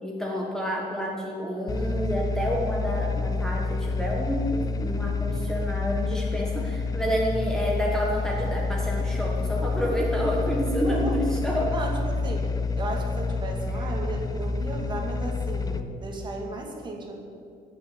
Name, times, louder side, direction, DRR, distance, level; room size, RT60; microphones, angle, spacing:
voice 1, 0.0-11.7, equal, 5° left, -3 dB, 1.4 m, -29 dB
sound 1, 1.7-15.8, left 3 dB, 25° left, 0.7 m, -28 dB
voice 2, 10.8-11.2 11.7-12.5 12.8-17.2, right 2 dB, 30° right, 0 dB, 2.2 m, -34 dB
18.0 x 7.0 x 8.4 m, 2.4 s
cardioid pair, 170°, 16 cm